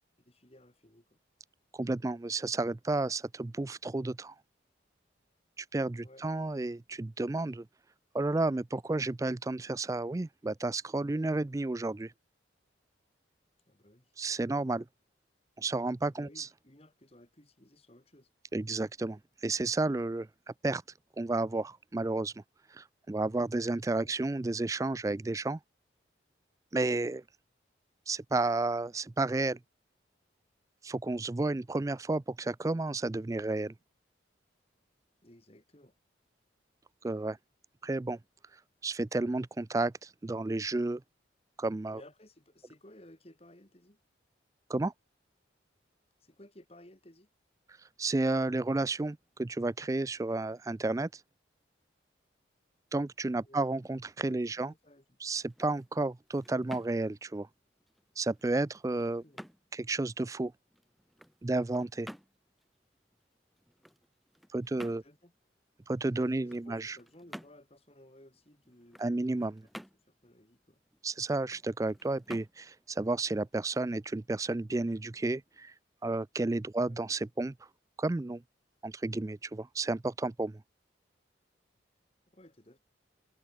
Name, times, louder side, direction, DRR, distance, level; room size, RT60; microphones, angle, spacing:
voice 1, 0.3-1.2 6.0-6.5 13.7-14.1 16.2-18.3 24.0-24.2 35.2-35.9 41.9-44.0 46.2-47.3 53.4-53.7 54.2-55.2 58.8-59.4 64.7-65.3 66.2-69.0 70.1-70.8 76.8-77.0 82.3-82.8, left 1 dB, 30° left, 2.8 m, -57 dB
voice 2, 1.7-4.4 5.6-7.6 8.1-12.1 14.2-14.8 15.6-16.5 18.5-20.3 20.6-20.8 21.2-22.4 22.7-25.6 26.7-27.2 28.1-29.6 30.8-33.7 37.0-37.4 37.8-38.2 38.5-41.0 41.6-42.0 44.7-44.9 47.7-51.2 52.9-54.7 55.2-57.5 58.2-59.2 59.7-60.5 61.4-62.1 64.5-65.0 65.9-67.0 69.0-69.6 71.0-75.7 76.0-77.7 78.0-78.4 78.8-80.6, right 2 dB, 15° right, 0.3 m, -32 dB
sound 1, 55.4-74.2, equal, ahead, 1.4 m, -53 dB
head